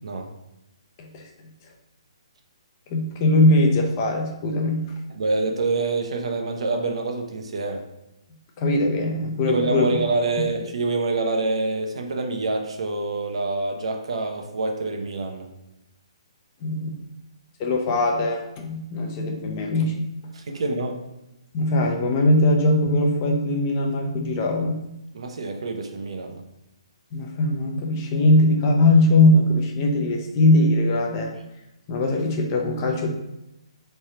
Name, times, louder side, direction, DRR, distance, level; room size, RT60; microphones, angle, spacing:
voice 1, 2.9-4.8 8.6-10.1 16.6-17.0 17.6-20.1 21.5-24.8 27.1-31.3 31.9-33.1, left 2 dB, 35° left, 1 dB, 0.6 m, -20 dB
voice 2, 5.1-7.9 9.5-15.5 20.3-21.0 25.1-26.4, right 3 dB, 70° right, 4 dB, 0.6 m, -26 dB
3.3 x 2.7 x 4.3 m, 0.90 s
hypercardioid pair, 140°, 3 cm